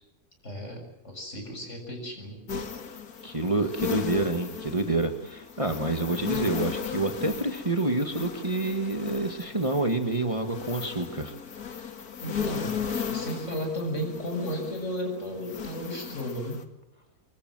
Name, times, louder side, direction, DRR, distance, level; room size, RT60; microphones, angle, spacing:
voice 1, 0.4-2.4 12.2-12.8 13.1-16.6, equal, 55° left, 3 dB, 7.4 m, -34 dB
sound 1, 2.5-16.6, left 7 dB, 90° left, 2.4 m, -36 dB
voice 2, 3.2-11.3, right 2 dB, 20° right, 6 dB, 1.9 m, -28 dB
24.5 x 23.5 x 7.7 m, 0.95 s
omnidirectional pair, 1.5 m